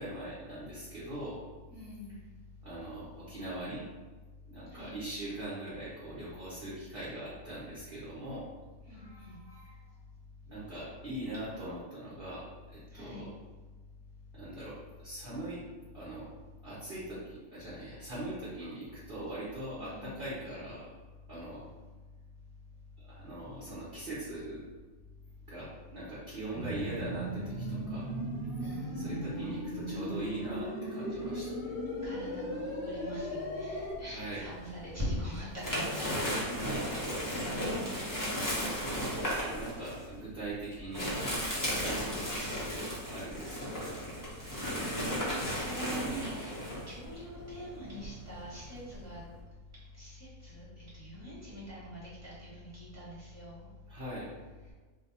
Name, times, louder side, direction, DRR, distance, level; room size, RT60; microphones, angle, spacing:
voice 1, 0.0-1.4 2.6-3.8 4.5-8.5 8.9-9.8 10.5-13.3 14.3-15.6 15.9-16.3 16.6-20.8 21.3-21.7 23.0-24.6 25.5-28.1 28.9-31.8 34.1-34.5 36.5-37.3 38.9-41.1 41.5-43.9 53.9-54.3, right 1 dB, 45° right, -9 dB, 0.9 m, -41 dB
voice 2, 1.7-2.2 4.7-4.9 8.9-9.4 12.9-13.3 19.8-20.3 28.6-29.6 32.0-36.5 37.3-38.6 43.4-43.8 44.4-49.2 50.0-53.7, equal, 10° right, -9 dB, 1.2 m, -43 dB
sound 1, 26.5-33.9, equal, 50° left, 0.8 m, -37 dB
sound 2, 33.9-34.9 35.3-49.4, equal, 30° left, 0.4 m, -35 dB
2.7 x 2.2 x 4.0 m, 1.3 s
omnidirectional pair, 1.5 m